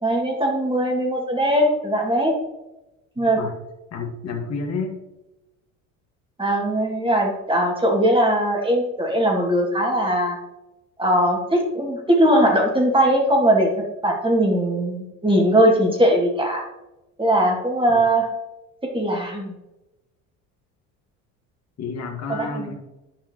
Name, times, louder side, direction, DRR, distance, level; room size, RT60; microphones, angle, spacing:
voice 1, 0.0-2.3 3.2-3.4 6.4-10.4 11.0-16.6 17.2-18.3 18.8-19.5 22.3-22.7, right 1 dB, 15° right, -1 dB, 2.6 m, -20 dB
voice 2, 3.2-3.5 3.9-5.0 17.9-18.0 21.8-22.7, left 4 dB, 45° left, 1 dB, 2.0 m, -30 dB
11.0 x 5.6 x 3.1 m, 0.97 s
supercardioid pair, 80°, 37 cm